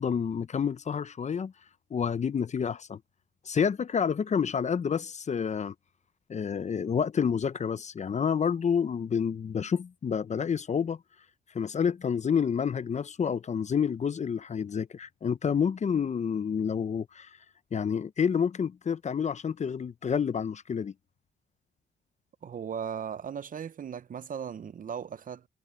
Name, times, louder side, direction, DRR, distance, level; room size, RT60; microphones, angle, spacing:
voice 1, 0.0-1.5 1.9-3.0 3.5-5.7 6.3-11.0 11.5-17.3 17.7-20.9, left 7 dB, 35° left, 0.7 m, -29 dB
voice 2, 22.4-25.5, right 7 dB, 45° right, 0.8 m, -37 dB
cardioid pair, 90°, 20 cm